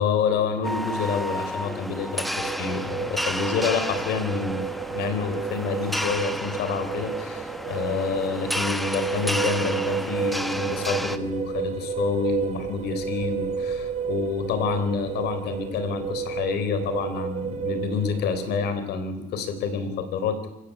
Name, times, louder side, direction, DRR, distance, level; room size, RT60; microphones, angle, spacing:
voice 1, 0.0-20.5, left 6 dB, 75° left, 10 dB, 4.1 m, -28 dB
sound 1, 0.6-11.2, equal, ahead, 1.2 m, -31 dB
sound 2, 2.4-18.7, right 6 dB, 40° right, 3.3 m, -31 dB
26.5 x 15.5 x 8.6 m, 0.93 s
cardioid pair, 110°, 17 cm